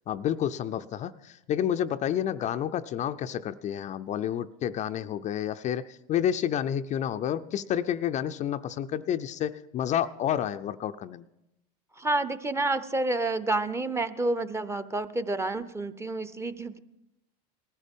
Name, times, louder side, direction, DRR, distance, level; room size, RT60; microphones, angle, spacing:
voice 1, 0.1-11.3, left 10 dB, 35° left, 9 dB, 0.5 m, -30 dB
voice 2, 12.0-16.8, right 2 dB, 15° right, 12 dB, 0.7 m, -29 dB
19.5 x 14.5 x 3.7 m, 0.87 s
supercardioid pair, 105°, 20 cm